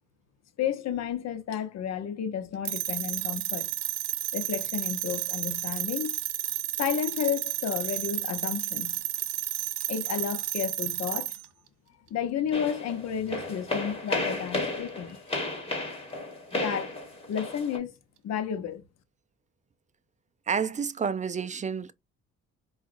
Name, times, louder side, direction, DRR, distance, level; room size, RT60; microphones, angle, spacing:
voice 1, 0.6-3.7 4.3-6.2 6.8-9.0 9.9-11.3 12.1-15.2 16.5-17.0 17.3-17.9 18.2-18.8, left 8 dB, 60° left, 0.8 m, -32 dB
sound 1, 2.7-11.5, right 15 dB, 85° right, 0.5 m, -32 dB
sound 2, 12.5-17.8, left 2 dB, 20° left, 1.6 m, -33 dB
voice 2, 20.5-21.9, right 6 dB, 25° right, 0.4 m, -29 dB
4.7 x 2.4 x 2.5 m
cardioid pair, 90°, 30 cm